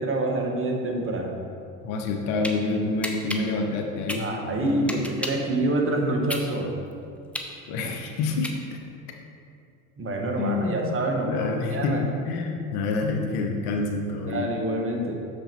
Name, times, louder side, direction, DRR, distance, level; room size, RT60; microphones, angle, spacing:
voice 1, 0.0-1.4 4.2-6.7 10.0-12.0 14.3-15.2, right 1 dB, 30° right, 1 dB, 1.4 m, -27 dB
voice 2, 1.8-5.0 7.7-8.8 10.4-14.6, left 3 dB, 70° left, 3 dB, 1.1 m, -28 dB
sound 1, 2.0-2.6 3.0-5.5 5.9-9.0, left 1 dB, 5° left, 0.7 m, -34 dB
6.8 x 6.5 x 4.5 m, 2.4 s
hypercardioid pair, 90°, 45 cm